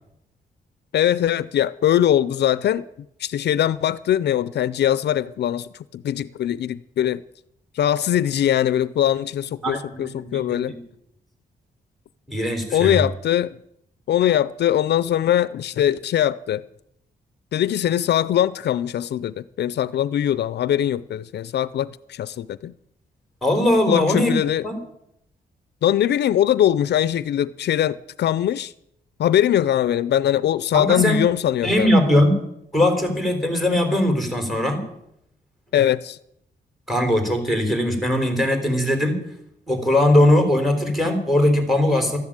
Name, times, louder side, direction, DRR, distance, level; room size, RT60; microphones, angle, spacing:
voice 1, 0.9-2.8 3.2-7.2 7.7-10.7 12.7-13.6 14.1-16.6 17.5-22.7 23.9-24.6 25.8-28.7 29.2-31.9 35.7-36.2, left 11 dB, 75° left, 0.5 m, -21 dB
voice 2, 9.6-10.8 12.3-13.0 23.4-24.3 24.6-24.8 30.7-31.2 31.6-32.4 32.7-34.8 36.9-39.2 39.7-42.2, left 1 dB, ahead, 3.8 m, -20 dB
13.0 x 11.0 x 8.8 m
cardioid pair, 115°, 17 cm